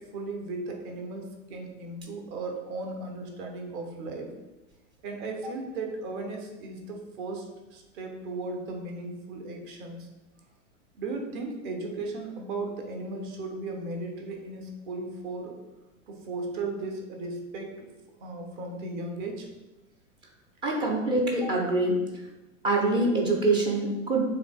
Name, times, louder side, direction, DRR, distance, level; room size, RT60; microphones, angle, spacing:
voice 1, 0.0-4.3 5.0-10.1 10.9-15.6 16.1-17.9 18.2-19.5, right 2 dB, 35° right, 2 dB, 0.9 m, -36 dB
voice 2, 20.6-22.0 22.6-24.2, right 2 dB, 15° right, 0 dB, 0.4 m, -24 dB
7.2 x 2.8 x 2.3 m, 1.1 s
figure-of-eight pair, 95°, 39 cm